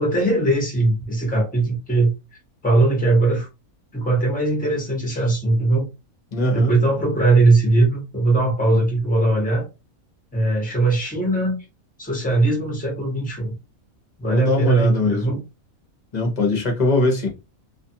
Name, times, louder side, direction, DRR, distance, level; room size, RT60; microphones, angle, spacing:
voice 1, 0.0-2.1 2.6-3.5 3.9-5.9 6.5-9.7 10.3-11.5 12.0-13.5 14.2-15.4, right 2 dB, 5° left, 0.8 m, -20 dB
voice 2, 6.3-6.7 14.2-15.2 16.1-17.3, left 2 dB, 35° left, 0.8 m, -21 dB
2.6 x 2.4 x 2.7 m
omnidirectional pair, 1.5 m